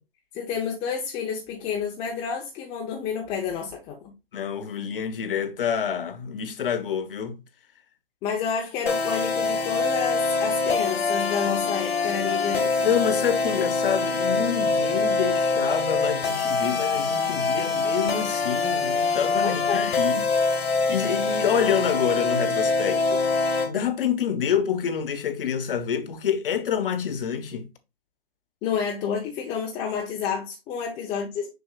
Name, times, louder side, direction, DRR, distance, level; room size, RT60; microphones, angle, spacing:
voice 1, 0.3-4.1 8.2-12.9 19.4-19.8 28.6-31.5, left 6 dB, 15° left, 0.9 m, -29 dB
voice 2, 4.3-7.4 12.8-20.3 20.9-23.2 23.7-27.7, left 8 dB, 60° left, 1.3 m, -27 dB
sound 1, 8.9-23.7, left 4 dB, 80° left, 2.1 m, -24 dB
6.7 x 6.0 x 2.4 m
hypercardioid pair, 155°, 31 cm